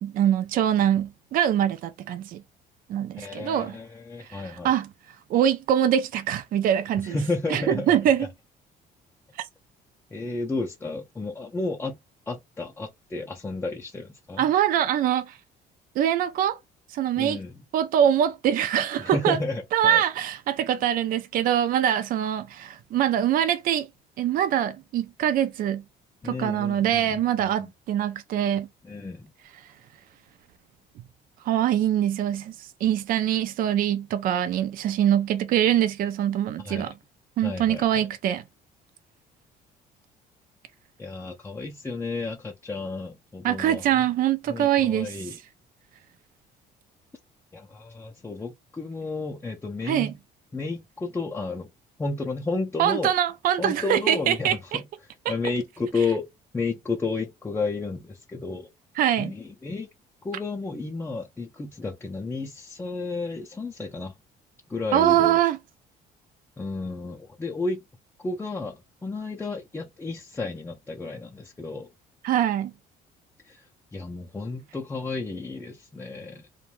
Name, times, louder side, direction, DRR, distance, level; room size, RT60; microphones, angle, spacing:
voice 1, 0.0-2.4 2.9-3.8 4.3-4.9 5.3-7.2 7.5-8.3 14.4-15.4 16.0-16.6 16.9-17.4 17.7-19.4 19.7-23.9 24.2-25.8 26.2-28.7 31.4-36.9 37.4-38.4 43.4-45.3 49.8-50.1 52.8-54.8 59.0-59.3 64.9-65.6 72.2-72.7, right 10 dB, 55° right, 0.4 m, -23 dB
voice 2, 3.2-4.7 7.0-8.0 10.1-12.0 12.3-14.5 17.2-17.6 19.0-20.0 26.2-27.7 28.8-29.3 36.6-36.9 37.4-38.1 41.0-44.0 44.5-45.4 47.5-50.2 50.5-51.7 52.0-53.1 53.6-54.8 55.3-56.3 56.5-58.7 59.2-59.9 60.2-64.1 64.7-65.4 66.6-67.8 68.2-71.9 73.4-73.6 73.9-76.5, left 3 dB, 15° left, 0.5 m, -32 dB
2.5 x 2.2 x 3.0 m
cardioid pair, 110°, 17 cm